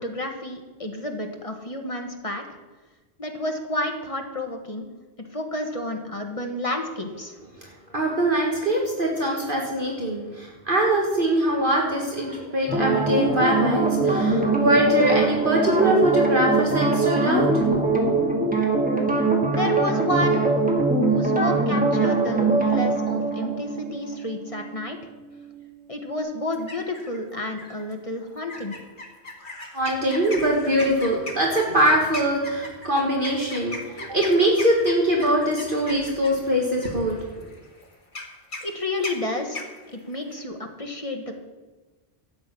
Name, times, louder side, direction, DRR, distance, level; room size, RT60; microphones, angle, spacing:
voice 1, 0.0-2.4 3.2-4.9 5.2-7.4 19.5-20.5 21.1-25.0 25.9-28.8 38.6-41.4, left 1 dB, 30° left, 3 dB, 1.4 m, -30 dB
voice 2, 7.9-17.6 29.7-37.2, right 1 dB, 50° right, -1 dB, 1.9 m, -22 dB
sound 1, 12.7-25.8 26.1-26.2, right 3 dB, 10° right, 2.0 m, -22 dB
sound 2, 26.5-27.2 27.6-27.9 28.5-40.4, left 2 dB, 50° left, 2.0 m, -38 dB
12.5 x 8.8 x 5.9 m, 1.2 s
omnidirectional pair, 1.1 m